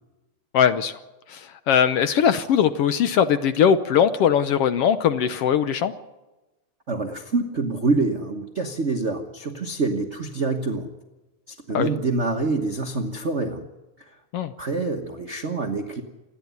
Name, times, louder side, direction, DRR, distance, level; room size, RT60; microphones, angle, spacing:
voice 1, 0.5-1.0 1.3-5.9 11.7-11.9 14.3-14.5, left 8 dB, 70° left, 11 dB, 1.5 m, -20 dB
voice 2, 6.9-10.9 11.5-13.6 14.0-14.2 14.6-16.0, right 3 dB, 75° right, 3 dB, 0.6 m, -26 dB
27.5 x 10.5 x 9.5 m, 1.1 s
omnidirectional pair, 3.3 m